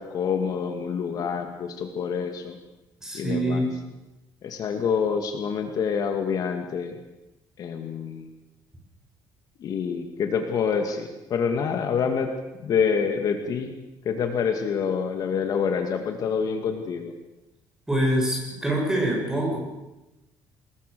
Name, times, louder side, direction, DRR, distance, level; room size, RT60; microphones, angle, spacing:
voice 1, 0.0-2.6 3.1-3.6 4.4-6.9 7.6-8.3 9.6-12.3 12.6-13.8 14.0-17.1, left 6 dB, 50° left, 5 dB, 2.1 m, -27 dB
voice 2, 3.0-3.7 17.9-19.6, right 1 dB, 5° right, -1 dB, 7.5 m, -25 dB
27.0 x 21.0 x 6.9 m, 1.0 s
cardioid pair, 165°, 8 cm